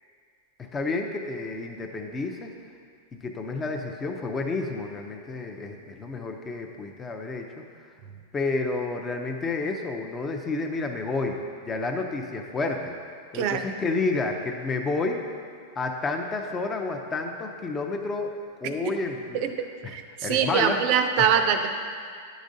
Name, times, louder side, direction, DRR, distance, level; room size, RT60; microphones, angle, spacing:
voice 1, 0.7-2.5 3.1-7.6 8.3-12.9 13.3-15.2 15.8-19.5 19.8-20.8 21.2-21.5, left 3 dB, 20° left, 3 dB, 0.5 m, -30 dB
voice 2, 19.8-21.7, right 7 dB, 50° right, 7 dB, 0.5 m, -23 dB
9.9 x 5.0 x 2.6 m, 2.2 s
supercardioid pair, 140°, 0 cm